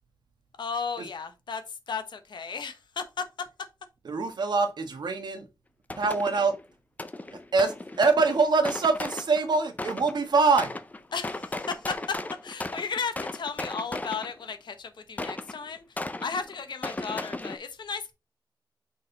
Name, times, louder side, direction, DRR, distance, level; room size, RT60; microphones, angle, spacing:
voice 1, 0.6-3.5 11.1-18.1, left 5 dB, 75° left, 1.0 m, -35 dB
voice 2, 4.0-5.4 6.0-6.5 7.3-10.8, right 4 dB, 65° right, 1.4 m, -24 dB
sound 1, 5.9-6.6 7.0-10.2 10.6-14.5 15.2-17.6, left 2 dB, 20° left, 0.5 m, -36 dB
6.4 x 4.1 x 4.0 m
wide cardioid pair, 140°, 8 cm